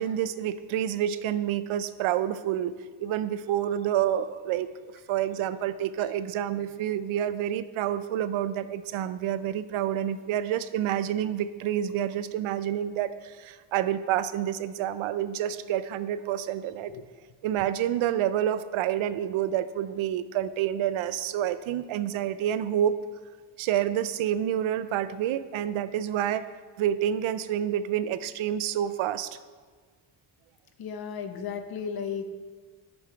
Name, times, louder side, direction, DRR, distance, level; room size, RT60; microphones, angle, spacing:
voice 1, 0.0-4.7 5.1-16.9 17.4-23.0 23.6-26.5 26.8-29.4, right 10 dB, 80° right, 13 dB, 0.6 m, -28 dB
voice 2, 30.8-32.3, left 6 dB, 50° left, 8 dB, 0.7 m, -34 dB
11.0 x 5.3 x 4.4 m, 1.5 s
wide cardioid pair, 170°, 47 cm